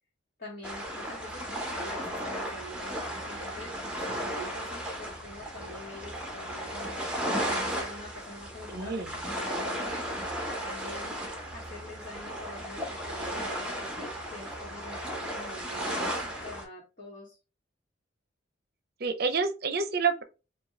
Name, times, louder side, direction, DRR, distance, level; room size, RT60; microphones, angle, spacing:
voice 1, 0.4-7.0 7.3-10.1 10.5-17.4, left 1 dB, 40° left, 1.4 m, -46 dB
sound 1, 0.6-16.6, equal, 5° right, 0.8 m, -35 dB
voice 2, 8.7-9.1 19.0-20.2, right 5 dB, 50° right, 0.6 m, -28 dB
5.2 x 2.3 x 3.1 m
head